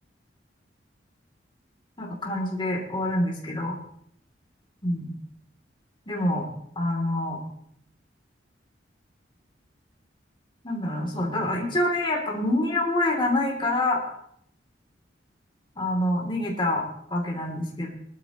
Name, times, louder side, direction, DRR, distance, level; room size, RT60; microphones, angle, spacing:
voice 1, 2.0-3.8 4.8-5.1 6.1-6.5 6.7-7.4 10.6-14.0 15.8-17.9, left 1 dB, 25° left, -1 dB, 3.2 m, -26 dB
21.0 x 12.0 x 3.1 m, 0.70 s
head